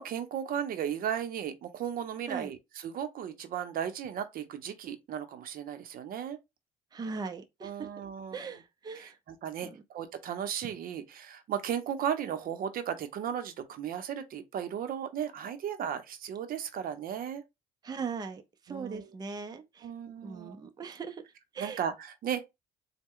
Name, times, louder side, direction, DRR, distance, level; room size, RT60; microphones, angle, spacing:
voice 1, 0.0-6.4 7.6-8.4 9.0-17.4 18.7-19.0 19.8-20.6 21.6-22.5, right 9 dB, 60° right, 0.7 m, -35 dB
voice 2, 6.9-7.9 8.3-9.2 9.6-9.8 17.8-19.9 20.2-21.2 21.5-21.8, right 5 dB, 25° right, 0.6 m, -39 dB
4.0 x 2.2 x 3.7 m
cardioid pair, 110°, 17 cm